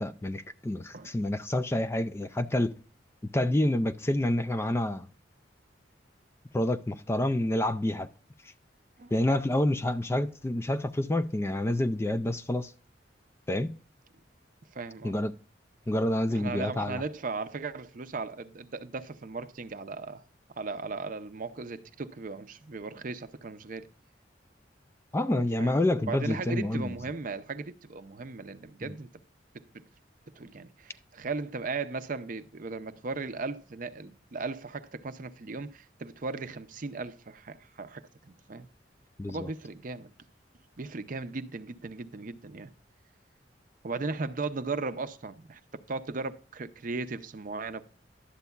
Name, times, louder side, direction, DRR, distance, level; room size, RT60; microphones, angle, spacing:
voice 1, 0.0-2.7 3.3-5.0 6.5-8.1 9.1-12.7 13.5-13.7 15.0-15.3 15.9-17.0 25.1-26.9 28.8-28.9 39.2-39.5, left 1 dB, 15° left, 0.3 m, -28 dB
voice 2, 14.7-15.1 16.3-20.2 20.5-23.9 25.6-25.8 26.0-29.1 29.5-29.9 30.4-38.7 39.3-40.1 40.8-42.7 43.8-47.8, right 3 dB, 50° right, 0.6 m, -37 dB
11.5 x 8.1 x 2.2 m
head